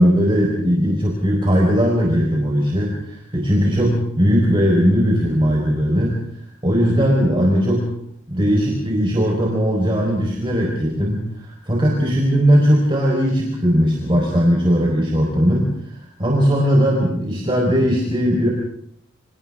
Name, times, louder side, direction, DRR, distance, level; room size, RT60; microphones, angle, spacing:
voice 1, 0.0-6.1 6.6-7.9 8.3-15.7 15.9-18.5, equal, 25° right, -2 dB, 4.5 m, -18 dB
29.5 x 27.0 x 3.7 m, 0.69 s
head